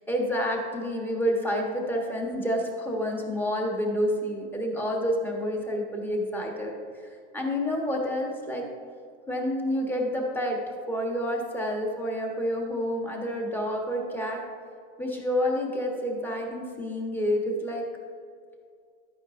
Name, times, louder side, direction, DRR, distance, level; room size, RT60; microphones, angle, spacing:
voice 1, 0.1-6.7 7.3-8.6 9.3-10.6 10.9-14.4 15.0-17.8, equal, 5° left, 0 dB, 1.1 m, -28 dB
11.5 x 9.2 x 2.6 m, 2.2 s
supercardioid pair, 140°, 33 cm